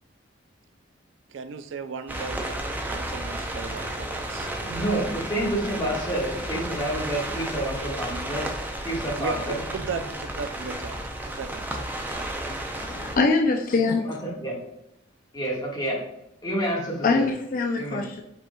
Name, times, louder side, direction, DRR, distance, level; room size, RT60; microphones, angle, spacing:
voice 1, 1.3-4.5 9.2-9.3 9.7-11.0 11.3-11.7, right 5 dB, 75° right, 10 dB, 0.4 m, -36 dB
sound 1, 2.1-13.2, right 1 dB, 10° right, 0.5 m, -32 dB
voice 2, 4.6-8.5 8.8-9.6 14.0-14.6 15.3-16.0 16.4-17.2 17.7-18.1, right 1 dB, 20° left, -4 dB, 1.5 m, -29 dB
voice 3, 12.5-14.1 17.0-18.2, left 3 dB, 45° left, 3 dB, 0.4 m, -24 dB
5.1 x 4.3 x 2.3 m, 0.83 s
head